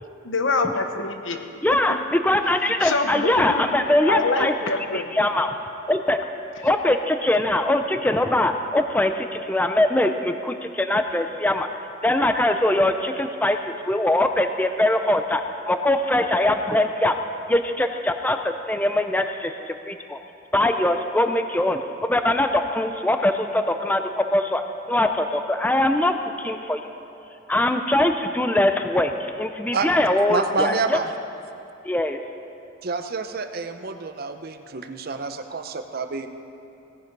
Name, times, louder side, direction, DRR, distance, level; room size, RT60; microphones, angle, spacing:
voice 1, 0.2-1.4 2.8-5.2, left 3 dB, 75° left, 7 dB, 1.0 m, -25 dB
voice 2, 1.6-4.5 4.9-5.5 5.9-6.2 6.6-11.7 12.0-13.6 13.9-17.2 17.5-19.5 19.9-20.2 20.5-24.6 24.9-26.8 27.5-31.0 31.8-32.2, left 1 dB, 10° left, 7 dB, 0.4 m, -22 dB
voice 3, 30.3-31.1 32.8-36.3, right 4 dB, 50° right, 8 dB, 0.7 m, -28 dB
17.0 x 9.9 x 5.3 m, 2.7 s
head